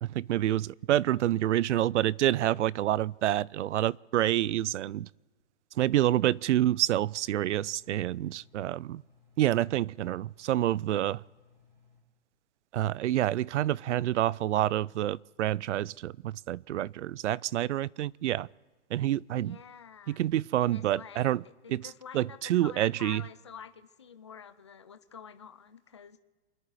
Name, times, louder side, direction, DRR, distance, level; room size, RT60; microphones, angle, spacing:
voice 1, 0.0-5.1 5.8-9.0 9.4-11.2 12.7-18.5 18.9-19.6 20.1-21.4 21.7-23.2, right 13 dB, 85° right, 0.5 m, -28 dB
Engine, 5.8-12.0, left 6 dB, 15° right, 2.7 m, -63 dB
voice 2, 19.4-20.2 20.6-21.3 21.6-26.2, left 7 dB, 25° left, 0.4 m, -48 dB
28.5 x 10.5 x 4.8 m
hypercardioid pair, 180°, 35 cm